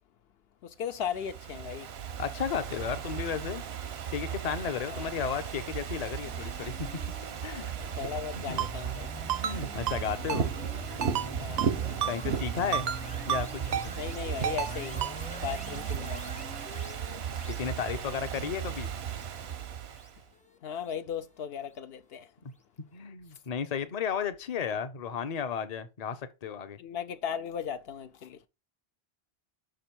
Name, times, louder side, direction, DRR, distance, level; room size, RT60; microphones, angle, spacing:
voice 1, 0.6-1.9 4.9-5.1 8.0-9.1 11.4-11.8 14.0-15.0 15.4-16.2 20.6-22.3 26.8-28.4, left 8 dB, 75° left, 0.8 m, -37 dB
Ocean / Fireworks, 0.9-20.2, right 8 dB, 90° right, 1.0 m, -36 dB
voice 2, 2.2-3.6 4.1-6.9 7.4-7.6 8.4-8.7 9.4-10.5 12.1-12.9 13.3-13.9 17.5-18.9 22.9-26.8, left 7 dB, 45° left, 0.7 m, -34 dB
sound 1, 6.2-21.4, equal, 10° left, 0.5 m, -45 dB
Ringtone, 8.6-8.7 9.3-9.6 9.9-10.0 10.3-10.4 11.0-11.3 11.6-11.7 12.0-12.1 12.7-13.0 13.3-13.4 13.7-13.9 14.4-14.7 15.0-15.1, right 9 dB, 55° right, 0.5 m, -30 dB
5.9 x 5.1 x 4.4 m
omnidirectional pair, 1.0 m